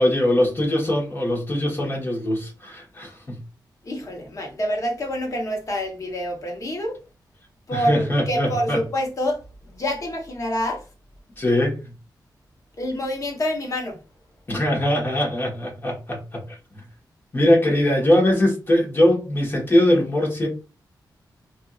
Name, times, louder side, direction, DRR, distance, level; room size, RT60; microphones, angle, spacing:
voice 1, 0.0-3.4 7.7-8.8 11.4-11.8 14.5-16.6 17.3-20.5, left 1 dB, 30° left, 1.3 m, -21 dB
voice 2, 3.8-7.0 7.7-9.4 9.7-10.8 12.8-14.0, equal, 45° left, 1.0 m, -27 dB
2.7 x 2.6 x 2.4 m
wide cardioid pair, 115°, 7 cm